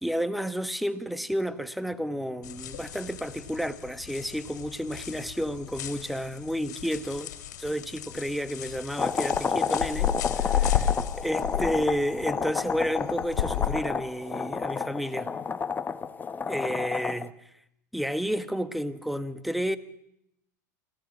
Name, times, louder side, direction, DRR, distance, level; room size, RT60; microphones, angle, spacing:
voice 1, 0.0-7.3 7.6-10.9 11.2-15.3 16.5-17.3 17.9-19.8, equal, ahead, 1.2 m, -31 dB
sound 1, 2.4-13.7, left 11 dB, 70° left, 2.7 m, -33 dB
sound 2, 9.0-17.3, left 5 dB, 20° left, 0.9 m, -30 dB
25.5 x 16.0 x 7.4 m
hypercardioid pair, 95°, 10 cm